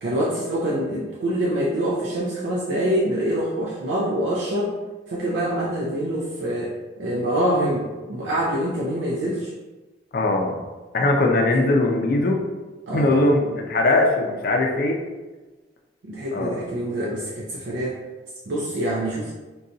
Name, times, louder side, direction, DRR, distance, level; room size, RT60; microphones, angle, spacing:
voice 1, 0.0-4.8 5.1-9.5 12.9-13.2 16.0-18.0 18.5-19.3, right 1 dB, 70° right, -4 dB, 0.4 m, -25 dB
voice 2, 10.1-10.5 10.9-12.4 12.9-15.0 16.3-16.6, left 2 dB, 50° left, 1 dB, 0.4 m, -20 dB
2.6 x 2.3 x 3.8 m, 1.2 s
head